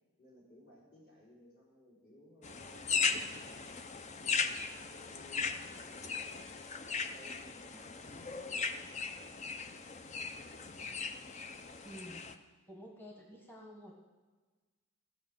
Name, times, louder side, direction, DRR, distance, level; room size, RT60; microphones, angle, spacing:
voice 1, 0.2-3.8 4.5-6.5 7.1-9.4, equal, 50° left, -6 dB, 4.8 m, -60 dB
sound 1, 2.4-12.3, left 5 dB, 30° left, 0.5 m, -38 dB
voice 2, 11.8-12.3 12.7-13.9, equal, 10° left, -1 dB, 1.3 m, -50 dB
14.0 x 5.4 x 7.8 m, 1.3 s
head